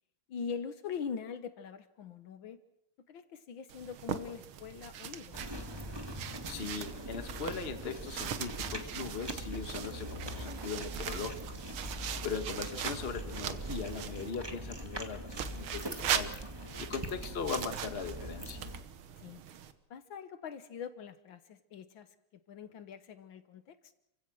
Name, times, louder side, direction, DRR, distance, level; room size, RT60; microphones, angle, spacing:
voice 1, 0.3-2.6 3.1-5.4 12.1-12.3 16.7-16.8 19.2-19.4 19.9-22.2 22.5-23.8, left 6 dB, 70° left, 11 dB, 1.8 m, -43 dB
sound 1, 3.7-14.3 15.3-19.7, right 9 dB, 85° right, 2.0 m, -40 dB
sound 2, 5.3-18.8, equal, 10° right, 1.8 m, -42 dB
voice 2, 6.5-11.4 12.2-16.3 16.8-18.6, left 5 dB, 30° left, 8 dB, 1.5 m, -39 dB
29.5 x 16.0 x 6.3 m, 0.84 s
omnidirectional pair, 2.3 m